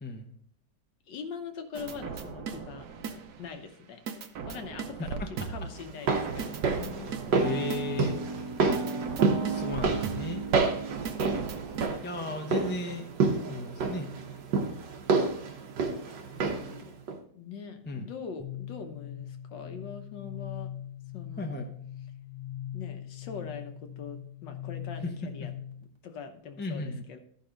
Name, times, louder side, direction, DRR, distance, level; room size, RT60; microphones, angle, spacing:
voice 1, 0.0-0.3 5.2-5.3 7.4-8.2 8.7-8.8 9.5-10.5 12.0-14.1 17.9-18.1 21.4-21.7 25.0-25.1 25.4-25.5 26.6-27.0, left 2 dB, 15° left, 4 dB, 0.4 m, -35 dB
voice 2, 1.1-2.9 3.4-4.0 4.5-7.6 16.3-17.0 17.3-20.7 21.1-21.5 22.7-25.5 26.0-27.2, left 6 dB, 85° left, 6 dB, 1.7 m, -42 dB
sound 1, 1.8-3.5 4.1-5.8 6.2-11.9, right 5 dB, 65° right, 1.3 m, -36 dB
sound 2, 5.8-16.8 17.1-17.2, right 4 dB, 85° right, 1.6 m, -29 dB
sound 3, 18.4-26.0, left 11 dB, 20° right, 0.8 m, -41 dB
13.0 x 5.3 x 3.9 m, 0.62 s
omnidirectional pair, 1.9 m